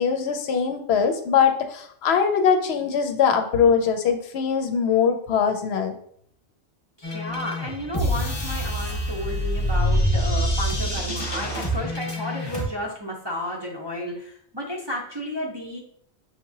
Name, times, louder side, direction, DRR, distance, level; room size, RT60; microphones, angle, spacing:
voice 1, 0.0-6.0, left 7 dB, 70° left, 5 dB, 0.8 m, -22 dB
sound 1, 7.0-12.6, equal, 25° left, 0.9 m, -26 dB
voice 2, 7.0-15.8, equal, 30° right, -4 dB, 0.6 m, -32 dB
6.4 x 2.8 x 2.7 m, 0.64 s
omnidirectional pair, 1.1 m